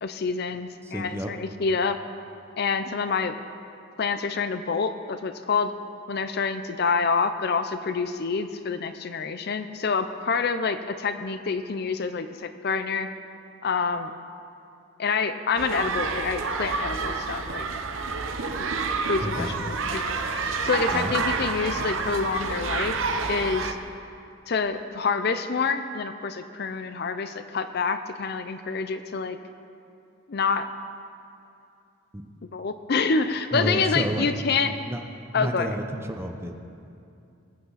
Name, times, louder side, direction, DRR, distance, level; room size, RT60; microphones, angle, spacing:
voice 1, 0.0-2.0 2.6-3.3 4.0-5.7 6.1-13.1 13.6-14.1 15.0-17.7 19.1-23.0 23.3-23.8 24.5-29.4 30.3-30.7 32.5-34.7 35.3-35.7, left 5 dB, 50° left, 10 dB, 0.5 m, -27 dB
voice 2, 0.8-1.3 19.2-19.6 20.9-21.1 32.1-32.2 33.5-34.3 34.6-35.0 35.3-36.5, right 1 dB, 10° right, 4 dB, 0.7 m, -30 dB
sound 1, 15.6-23.7, right 4 dB, 75° right, 0.8 m, -29 dB
21.0 x 8.7 x 4.1 m, 2.6 s
head